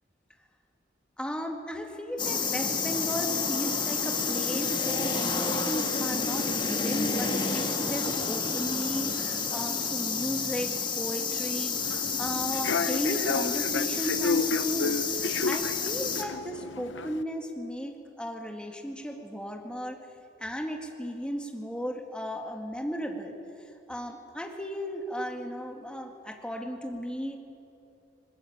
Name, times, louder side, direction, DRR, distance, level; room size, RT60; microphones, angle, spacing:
voice 1, 1.2-11.8 12.2-20.0 20.4-23.4 23.9-27.4, equal, 5° left, 2 dB, 2.1 m, -35 dB
sound 1, 2.2-16.2, left 5 dB, 25° left, 1.6 m, -30 dB
Human voice / Subway metro underground, 11.8-17.2, left 4 dB, 80° left, 0.8 m, -31 dB
21.0 x 20.5 x 8.7 m, 2.6 s
head